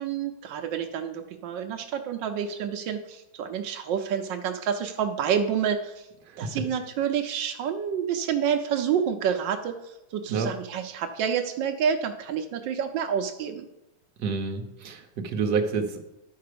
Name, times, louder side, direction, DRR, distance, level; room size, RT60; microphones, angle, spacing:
voice 1, 0.0-6.1 6.4-13.7, right 8 dB, 90° right, 5 dB, 1.4 m, -28 dB
voice 2, 6.2-6.6 10.3-10.5 14.2-16.0, right 5 dB, 65° right, 3 dB, 1.5 m, -28 dB
11.5 x 4.7 x 6.7 m, 0.93 s
omnidirectional pair, 1.9 m